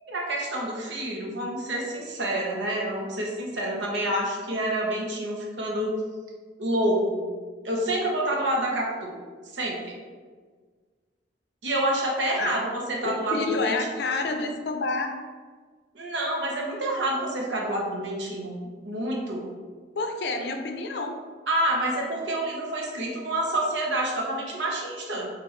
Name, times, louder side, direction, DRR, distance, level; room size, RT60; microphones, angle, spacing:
voice 1, 0.1-5.9 6.6-7.3 7.6-9.1 9.5-9.9 11.6-13.7 15.9-18.6 18.8-19.5 21.5-25.3, right 1 dB, 85° right, -2 dB, 0.9 m, -28 dB
voice 2, 13.0-15.2 19.9-21.2, left 3 dB, 65° left, 5 dB, 0.4 m, -29 dB
4.7 x 2.5 x 3.2 m, 1.5 s
head